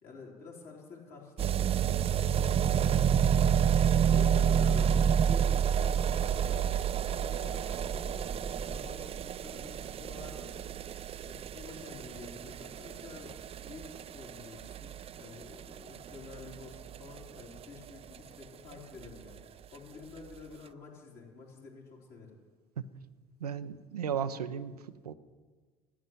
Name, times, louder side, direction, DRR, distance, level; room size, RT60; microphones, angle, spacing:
voice 1, 0.0-7.6 7.9-8.3 8.6-10.7 11.0-13.3 13.6-22.3, left 4 dB, 50° left, -2 dB, 3.9 m, -50 dB
sound 1, 1.4-18.2 18.4-18.5 18.7-18.8 19.0-19.1 19.4-19.5 20.2-20.3, right 8 dB, 30° right, 0.5 m, -29 dB
voice 2, 23.4-25.1, right 8 dB, 85° right, 11 dB, 0.6 m, -35 dB
14.0 x 7.3 x 9.4 m, 1.5 s
figure-of-eight pair, 60°, 19 cm